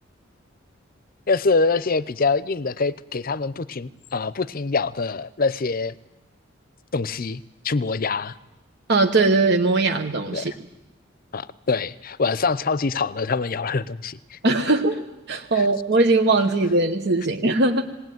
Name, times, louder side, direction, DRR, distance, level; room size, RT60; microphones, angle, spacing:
voice 1, 1.3-5.9 6.9-8.3 10.3-10.6 11.3-14.4 15.5-15.7, left 4 dB, 45° left, 17 dB, 0.7 m, -25 dB
voice 2, 8.9-10.5 14.4-17.8, right 2 dB, 55° right, 4 dB, 1.1 m, -20 dB
20.0 x 18.5 x 9.3 m, 1.0 s
head